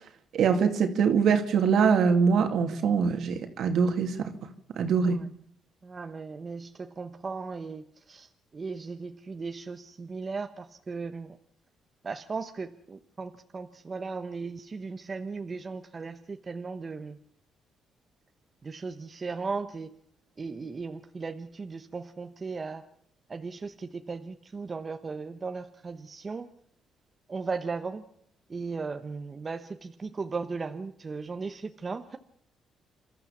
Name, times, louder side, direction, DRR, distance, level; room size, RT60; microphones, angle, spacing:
voice 1, 0.3-4.3 4.8-5.2, right 6 dB, 70° right, 2.4 m, -23 dB
voice 2, 5.8-7.8 8.1-8.3 8.5-11.3 12.0-17.1 18.6-19.9 20.4-22.8 23.3-23.7 24.1-26.5 27.3-28.0 28.5-32.2, right 4 dB, 35° right, 1.0 m, -36 dB
28.0 x 13.0 x 7.2 m
cardioid pair, 90°, 0 cm